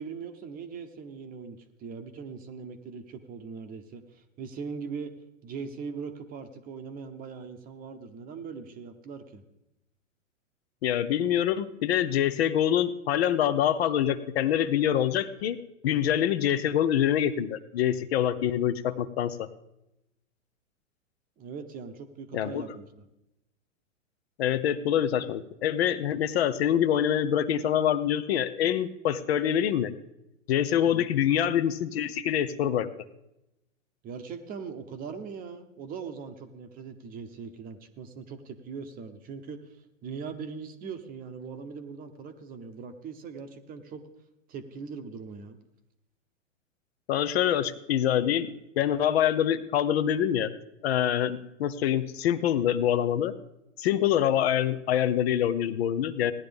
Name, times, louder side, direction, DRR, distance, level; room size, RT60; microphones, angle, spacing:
voice 1, 0.0-5.2 5.4-9.4 21.4-23.1 30.9-31.1 34.0-44.0 44.5-45.6, right 5 dB, 20° right, 8 dB, 0.9 m, -40 dB
voice 2, 10.8-15.6 15.8-19.5 22.3-22.6 24.4-29.9 30.5-32.9 47.1-48.5 48.8-50.5 50.8-53.3 53.8-56.3, left 10 dB, 50° left, 12 dB, 0.7 m, -25 dB
17.0 x 10.5 x 3.5 m, 0.90 s
hypercardioid pair, 125°, 39 cm